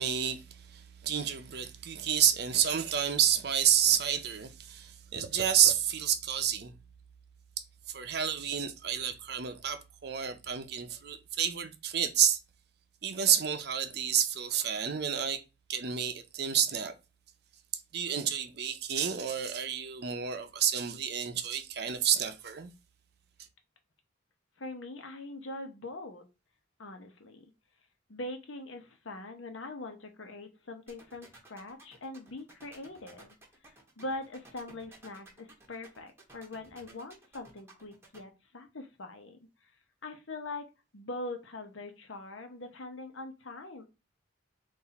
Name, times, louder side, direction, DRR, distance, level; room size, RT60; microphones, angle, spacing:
voice 1, 0.0-6.7 7.9-12.4 13.0-15.4 15.7-16.9 17.9-22.7, right 9 dB, 55° right, 0.6 m, -29 dB
voice 2, 24.6-26.2 26.8-27.5 28.1-33.3 33.7-39.4 40.0-43.9, left 2 dB, 85° left, 0.9 m, -42 dB
sound 1, 30.9-38.2, right 2 dB, 15° right, 1.0 m, -55 dB
4.0 x 2.6 x 4.1 m
head